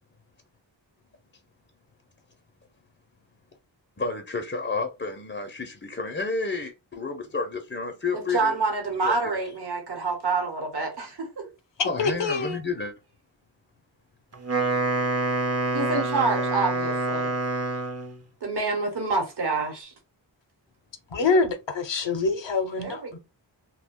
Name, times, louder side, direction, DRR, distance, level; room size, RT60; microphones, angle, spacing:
voice 1, 4.0-8.6 9.0-9.2 11.8-12.9, left 4 dB, 25° left, 0.5 m, -30 dB
voice 2, 8.1-11.5 15.7-17.3 18.4-19.9 22.8-23.2, right 3 dB, 60° right, 1.0 m, -27 dB
voice 3, 11.8-12.6 21.1-23.2, left 4 dB, 70° left, 0.6 m, -25 dB
Wind instrument woodwind instrument, 14.3-18.2, right 2 dB, 35° right, 0.6 m, -26 dB
2.3 x 2.1 x 3.5 m
wide cardioid pair, 60°, 45 cm